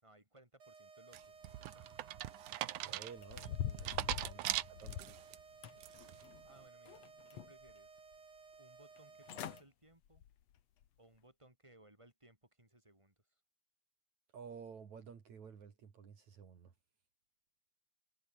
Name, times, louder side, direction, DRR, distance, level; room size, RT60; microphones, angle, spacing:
voice 1, 0.0-2.1 6.4-7.1 7.3-8.0 8.6-10.2 11.0-13.4, right 1 dB, 10° right, 6.6 m, -64 dB
sound 1, 0.6-9.6, right 4 dB, 45° right, 4.5 m, -58 dB
sound 2, 1.1-5.4 5.8-6.2, right 15 dB, 80° right, 2.4 m, -40 dB
voice 2, 2.8-5.2 14.3-16.7, right 6 dB, 65° right, 4.1 m, -53 dB
sound 3, 3.2-5.2 5.6-6.5 6.9-7.7 8.1-8.2 9.0-9.1 9.3-9.6 10.1-10.3 10.8-10.9, left 10 dB, 60° left, 2.5 m, -44 dB
omnidirectional pair, 3.5 m